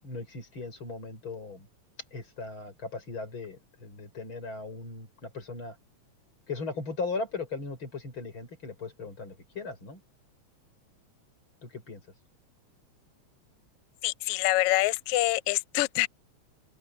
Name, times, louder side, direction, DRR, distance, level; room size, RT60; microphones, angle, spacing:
voice 1, 0.0-1.7 2.1-5.8 6.5-10.0 11.6-12.0, left 3 dB, 40° left, 7.0 m, -38 dB
voice 2, 14.0-16.1, left 18 dB, 85° left, 1.3 m, -26 dB
open air
omnidirectional pair, 3.3 m